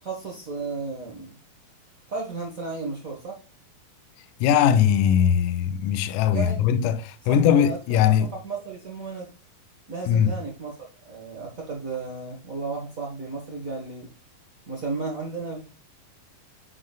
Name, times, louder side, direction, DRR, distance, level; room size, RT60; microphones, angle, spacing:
voice 1, 0.0-1.3 2.1-3.4 6.3-6.7 7.2-9.3 9.9-10.7 11.0-14.1 14.7-15.7, right 4 dB, 80° right, 0.7 m, -34 dB
voice 2, 4.4-8.3 10.1-10.3, left 9 dB, 85° left, 1.8 m, -20 dB
9.6 x 6.2 x 2.3 m
omnidirectional pair, 4.2 m